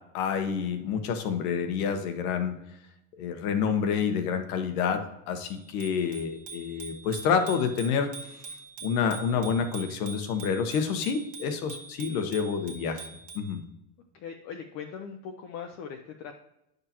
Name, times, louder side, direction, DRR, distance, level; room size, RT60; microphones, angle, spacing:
voice 1, 0.1-2.6 3.2-8.1 8.8-13.1 13.3-13.6, left 6 dB, 80° left, 7 dB, 1.3 m, -28 dB
Bicycle bell, 5.4-13.5, right 4 dB, 40° right, 1.5 m, -44 dB
voice 2, 14.1-16.3, left 7 dB, 40° left, 4 dB, 0.6 m, -40 dB
9.8 x 6.6 x 3.0 m, 0.86 s
cardioid pair, 155°, 43 cm